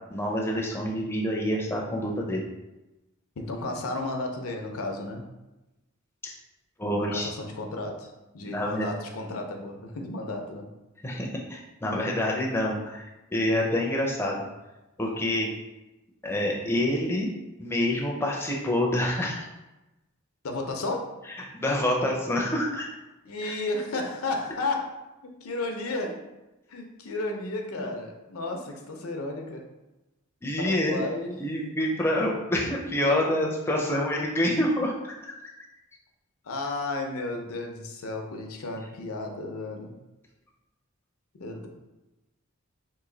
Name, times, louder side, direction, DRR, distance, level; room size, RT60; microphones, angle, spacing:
voice 1, 0.1-2.4 6.2-6.4 6.8-7.3 8.4-8.9 11.0-14.5 15.0-15.5 16.2-17.3 17.6-19.5 21.5-22.9 23.4-23.6 27.8-27.9 30.4-31.0 31.4-35.1, left 1 dB, 10° left, -1 dB, 0.4 m, -27 dB
voice 2, 3.4-5.2 6.9-10.7 20.4-21.2 23.2-25.0 25.2-26.2 26.7-29.7 30.6-31.4 36.4-39.9 41.3-41.7, left 2 dB, 85° left, 3 dB, 0.6 m, -33 dB
3.0 x 2.6 x 3.7 m, 1.0 s
head